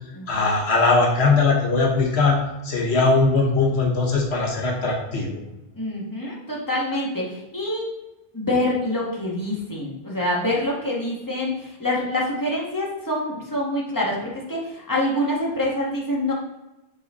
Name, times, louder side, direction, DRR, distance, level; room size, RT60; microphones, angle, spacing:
voice 1, 0.3-2.4 2.6-5.4, left 3 dB, 90° left, 1 dB, 1.5 m, -20 dB
voice 2, 5.7-7.9 8.3-16.3, left 1 dB, 20° left, -4 dB, 1.9 m, -26 dB
8.2 x 4.4 x 3.9 m, 0.99 s
omnidirectional pair, 1.1 m